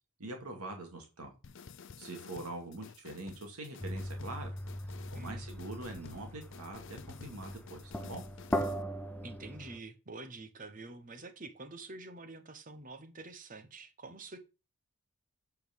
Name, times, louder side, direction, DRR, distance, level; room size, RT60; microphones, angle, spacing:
voice 1, 0.2-1.3 2.0-4.5 5.1-8.2, right 2 dB, 85° right, 2.2 m, -44 dB
sound 1, 1.4-8.8, left 5 dB, 55° left, 0.5 m, -52 dB
sound 2, 3.8-9.8, equal, 10° left, 0.6 m, -39 dB
voice 2, 5.1-5.5 9.2-14.4, right 3 dB, 35° right, 1.0 m, -47 dB
8.3 x 4.6 x 5.2 m
head